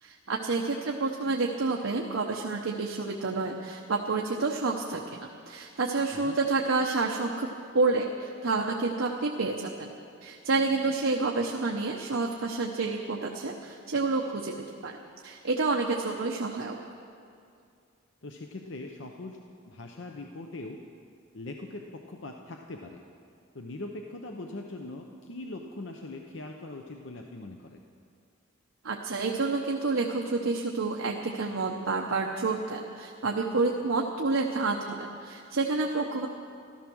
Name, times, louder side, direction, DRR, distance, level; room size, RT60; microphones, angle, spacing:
voice 1, 0.0-7.5 7.7-9.9 10.2-15.0 15.2-16.8 28.8-36.3, right 3 dB, 90° right, 0 dB, 0.9 m, -29 dB
voice 2, 18.2-19.4 19.6-20.8 21.3-23.0 23.5-27.8, left 2 dB, 70° left, 3 dB, 0.8 m, -41 dB
14.5 x 13.0 x 6.2 m, 2.4 s
head